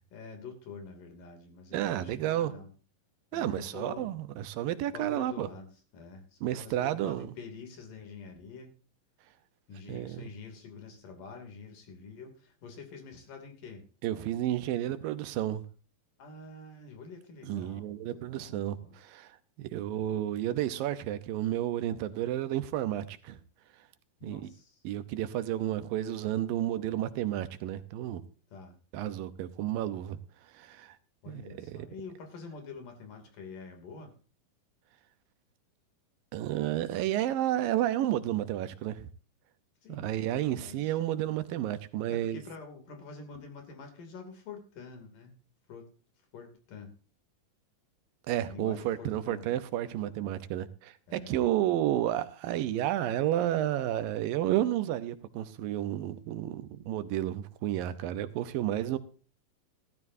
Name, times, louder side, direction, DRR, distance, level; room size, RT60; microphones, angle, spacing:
voice 1, 0.1-2.7 3.3-4.1 4.9-8.7 9.7-13.8 16.2-19.0 19.8-20.1 24.2-24.8 28.5-28.8 31.2-34.1 39.8-40.1 40.4-41.0 42.1-45.3 45.7-45.9 46.3-46.9 48.4-49.5 50.2-50.4 51.1-51.4, left 5 dB, 70° left, 4.4 m, -47 dB
voice 2, 1.7-2.5 3.3-5.5 6.4-7.3 9.9-10.3 14.0-15.6 17.4-23.4 24.2-24.5 24.8-28.2 28.9-30.2 30.5-31.0 31.3-31.9 36.3-39.1 39.9-42.4 48.3-59.0, right 12 dB, 80° right, 2.6 m, -31 dB
16.0 x 13.5 x 2.7 m
omnidirectional pair, 4.0 m